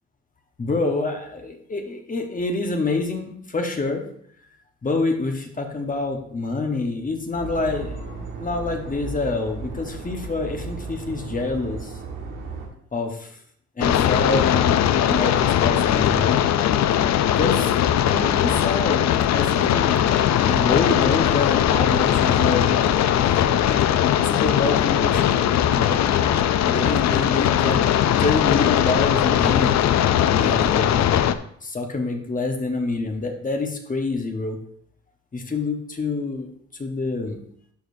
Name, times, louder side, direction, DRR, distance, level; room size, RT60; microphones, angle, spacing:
voice 1, 0.6-4.0 4.8-12.0 12.9-13.3 13.8-16.4 17.3-17.7 18.0-22.9 23.7-23.8 24.2-25.4 25.7-26.0 26.6-27.8 28.2-30.0 30.3-31.2 31.6-34.6 35.3-36.5 36.8-37.4, left 3 dB, 25° left, 4 dB, 1.2 m, -27 dB
sound 1, 7.3-12.7, right 4 dB, 90° right, 1.6 m, -35 dB
sound 2, 13.8-31.3, left 10 dB, 65° left, 0.5 m, -19 dB
11.5 x 5.0 x 2.7 m, 0.65 s
cardioid pair, 90°, 30 cm